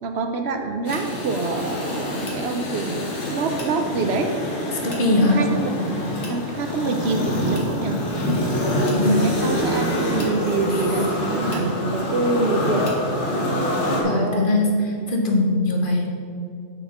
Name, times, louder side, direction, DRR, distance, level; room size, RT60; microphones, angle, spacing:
voice 1, 0.0-4.3 5.3-5.7 6.3-8.0 9.0-13.0 13.9-14.5, right 3 dB, 65° right, 5 dB, 0.8 m, -26 dB
sound 1, 0.8-14.0, equal, 70° left, 1.6 m, -25 dB
voice 2, 4.8-5.4 8.9-9.3 10.7-10.8 14.0-14.7 15.1-16.1, left 2 dB, 45° left, 0 dB, 1.1 m, -20 dB
6.4 x 4.3 x 6.4 m, 2.5 s
omnidirectional pair, 1.3 m